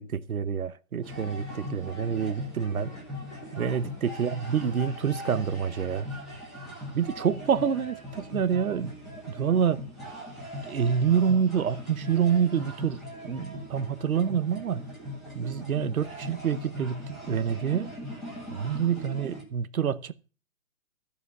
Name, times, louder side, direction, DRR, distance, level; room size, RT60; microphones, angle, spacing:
voice 1, 0.0-2.9 3.5-6.1 6.9-8.9 9.3-9.8 10.6-14.9 15.3-17.9 18.5-20.1, right 7 dB, 75° right, 1.1 m, -27 dB
sound 1, 1.0-19.4, left 1 dB, ahead, 2.2 m, -40 dB
14.0 x 5.2 x 8.0 m
hypercardioid pair, 160°, 43 cm